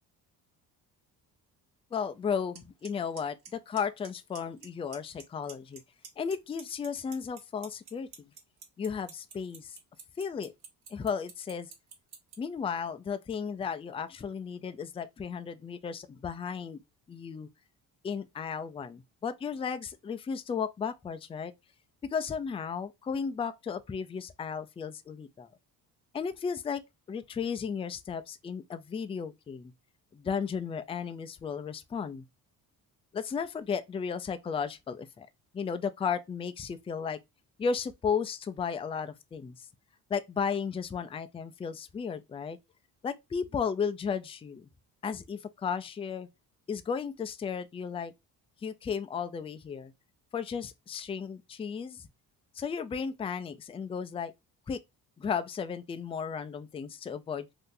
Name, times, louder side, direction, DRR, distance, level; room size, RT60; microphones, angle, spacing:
voice 1, 1.9-5.8 6.2-8.1 8.8-9.8 10.2-10.5 10.9-11.7 12.4-16.8 17.1-17.5 18.0-21.5 22.1-25.5 26.1-26.8 27.1-29.7 30.1-32.2 33.1-35.3 35.5-37.2 37.6-39.7 40.1-42.6 43.0-44.7 45.0-46.3 46.7-48.1 48.6-49.9 50.3-52.1 52.5-54.3 54.7-54.8 55.2-57.5, left 6 dB, 15° left, 0.3 m, -34 dB
Clock, 2.5-2.6 2.8-3.2 3.4-4.1 4.3-4.7 4.9-5.8 6.0-12.3, right 7 dB, 65° right, 1.2 m, -46 dB
2.7 x 2.4 x 3.7 m
supercardioid pair, 75°, 40 cm